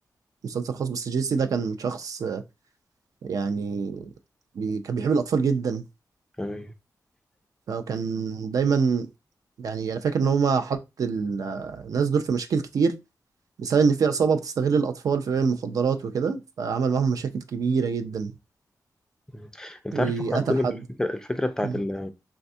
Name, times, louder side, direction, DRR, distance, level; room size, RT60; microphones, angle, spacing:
voice 1, 0.4-2.4 3.2-4.1 4.5-5.8 7.7-9.1 9.6-12.9 13.6-18.3 19.9-20.8 21.6-21.8, right 5 dB, 65° right, 0.3 m, -25 dB
voice 2, 6.4-6.7 19.3-20.7 21.0-22.1, left 1 dB, 10° left, 0.3 m, -29 dB
3.4 x 2.3 x 2.5 m
wide cardioid pair, 170°, 6 cm